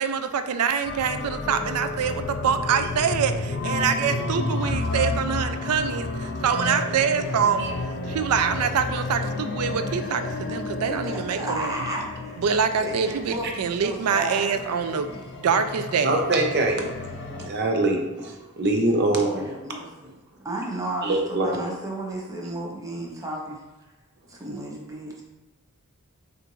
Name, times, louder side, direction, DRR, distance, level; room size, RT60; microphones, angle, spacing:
voice 1, 0.0-6.1 6.4-7.7 8.1-11.7 12.4-15.1 15.4-16.1, right 6 dB, 85° right, 9 dB, 0.4 m, -25 dB
sound 1, 0.8-17.5, left 2 dB, 50° left, 0.5 m, -31 dB
voice 2, 10.8-12.4 12.8-16.6 17.2-17.5 18.2-18.5 19.0-20.1 20.4-23.6 24.3-25.2, right 1 dB, 15° right, -2 dB, 0.7 m, -34 dB
voice 3, 16.0-16.9 17.5-19.5 21.0-21.5, right 2 dB, 50° right, 2 dB, 0.7 m, -23 dB
6.6 x 2.5 x 3.0 m, 1.1 s
head